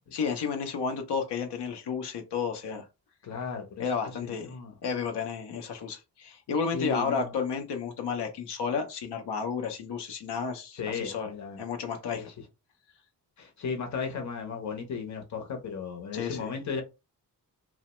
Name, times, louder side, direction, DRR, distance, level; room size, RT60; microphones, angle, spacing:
voice 1, 0.1-2.9 3.8-4.5 4.8-11.3 11.6-12.3 16.1-16.5, left 5 dB, 80° left, 0.6 m, -32 dB
voice 2, 3.2-3.8 4.2-4.7 6.7-7.3 10.7-11.6 12.1-12.3 13.4-16.8, left 5 dB, 45° left, 0.7 m, -35 dB
2.8 x 2.0 x 3.0 m
wide cardioid pair, 180°, 40 cm